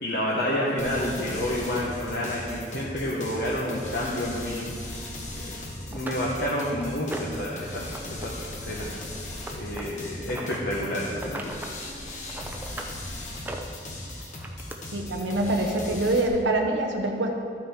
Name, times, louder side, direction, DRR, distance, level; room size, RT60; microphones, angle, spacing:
voice 1, 0.0-4.7 5.3-7.8 8.1-8.9 9.5-11.6, left 1 dB, 60° left, -5 dB, 1.1 m, -29 dB
sound 1, 0.8-16.3, left 1 dB, 40° left, 1.3 m, -38 dB
sound 2, 5.4-5.5 5.9-7.5 7.8-8.3 8.5-10.6 11.1-11.8 12.1-12.9 13.3-14.8 15.7-15.8 16.3-16.4, right 1 dB, 10° right, 0.5 m, -39 dB
voice 2, 14.9-17.3, right 1 dB, 85° right, 2 dB, 0.8 m, -25 dB
12.5 x 6.0 x 4.4 m, 2.3 s
head